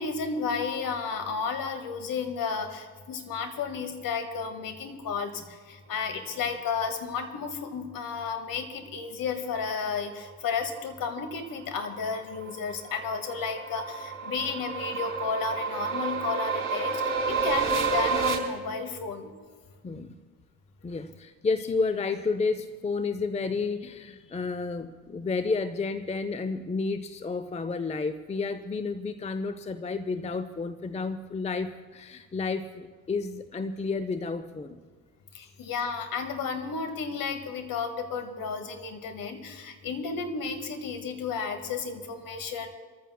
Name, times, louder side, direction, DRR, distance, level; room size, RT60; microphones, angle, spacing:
voice 1, 0.0-5.3 5.7-19.3 35.3-42.7, left 5 dB, 45° left, 7 dB, 1.9 m, -32 dB
sound 1, 11.8-18.4, right 5 dB, 30° right, 4.0 m, -30 dB
voice 2, 20.8-34.8, left 4 dB, 15° left, 11 dB, 0.7 m, -31 dB
28.5 x 14.5 x 2.3 m, 1.5 s
hypercardioid pair, 55°, 46 cm